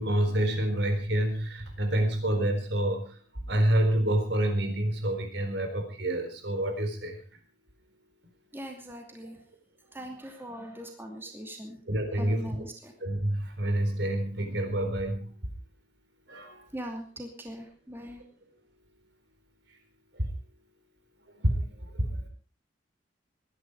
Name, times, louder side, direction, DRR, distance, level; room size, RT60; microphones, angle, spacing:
voice 1, 0.0-3.2 3.5-7.2 11.9-12.5 13.0-15.3 16.3-16.6 20.1-20.3 21.4-22.3, right 1 dB, 70° right, 6 dB, 4.1 m, -28 dB
voice 2, 8.5-9.4 9.9-11.8 12.2-12.9 16.7-18.2, equal, 10° right, 3 dB, 2.7 m, -41 dB
21.5 x 11.0 x 4.9 m, 0.37 s
head